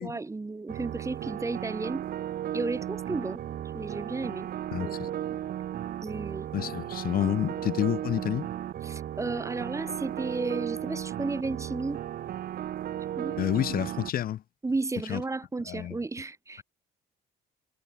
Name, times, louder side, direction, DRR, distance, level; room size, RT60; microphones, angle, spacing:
voice 1, 0.0-2.0 2.5-3.4 3.7-4.5 4.8-4.9 6.0-6.5 8.8-12.0 13.2-13.4 14.6-16.6, right 3 dB, 15° right, 5.2 m, -33 dB
sound 1, 0.7-14.1, right 11 dB, 60° right, 5.0 m, -35 dB
voice 2, 4.7-5.1 6.5-8.5 13.4-14.4 15.1-15.2 15.7-16.0, left 11 dB, 60° left, 3.8 m, -29 dB
cardioid pair, 110°, 17 cm